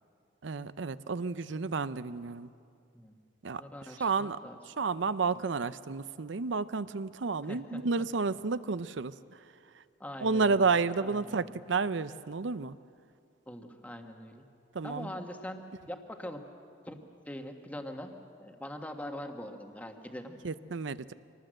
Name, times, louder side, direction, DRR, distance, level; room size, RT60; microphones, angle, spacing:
voice 1, 0.4-2.5 3.4-3.6 3.9-4.4 4.7-9.4 9.7-9.8 10.2-12.8 14.7-15.1 20.4-21.1, right 4 dB, 80° right, 15 dB, 0.6 m, -31 dB
voice 2, 3.6-4.5 7.5-7.8 10.0-10.7 11.0-11.5 13.5-14.4 14.8-16.5 16.8-17.0 17.2-18.1 18.4-20.4, left 1 dB, 10° left, 4 dB, 1.5 m, -43 dB
24.5 x 19.0 x 7.7 m, 2.4 s
head